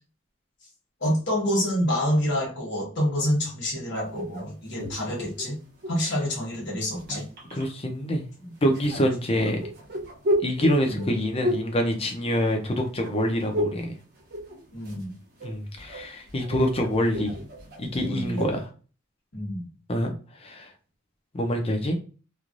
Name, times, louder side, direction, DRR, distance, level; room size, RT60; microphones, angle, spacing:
voice 1, 1.0-5.6 5.9-7.3 10.9-11.1 14.7-15.1 18.1-18.5 19.3-19.6, equal, 60° left, 1.3 m, -27 dB
sound 1, 3.9-6.1 6.8-7.7 8.7-12.8 13.0-13.9 14.2-15.1 15.4-18.6, equal, 50° right, 0.9 m, -33 dB
voice 2, 7.5-9.6 10.4-14.0 15.4-17.3 17.8-18.7 19.9-20.1 20.4-20.7 21.3-22.0, equal, 30° left, 0.6 m, -26 dB
3.1 x 2.3 x 2.5 m
head